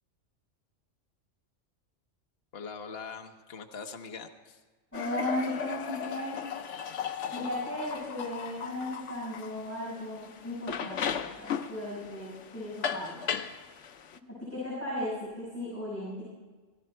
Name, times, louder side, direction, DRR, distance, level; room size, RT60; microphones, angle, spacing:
voice 1, 2.5-4.6, left 5 dB, 55° left, 5 dB, 1.2 m, -42 dB
sound 1, 4.9-14.2, left 7 dB, 70° left, 1.1 m, -36 dB
voice 2, 4.9-6.5 7.3-13.2 14.2-16.2, left 1 dB, 10° left, -9 dB, 6.1 m, -36 dB
17.5 x 16.0 x 4.4 m, 1.4 s
omnidirectional pair, 1.3 m